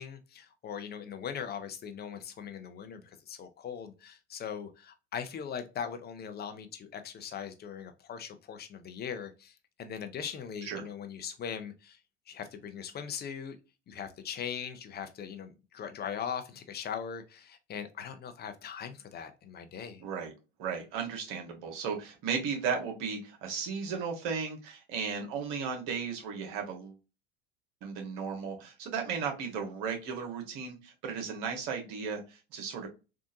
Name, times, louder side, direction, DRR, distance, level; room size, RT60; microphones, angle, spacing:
voice 1, 0.0-12.0 12.3-13.6 13.9-20.0, left 7 dB, 30° left, 0.7 m, -40 dB
voice 2, 20.0-20.3 20.6-27.0 27.8-32.9, right 6 dB, 65° right, 1.4 m, -35 dB
3.6 x 2.5 x 2.6 m
hypercardioid pair, 85°, 31 cm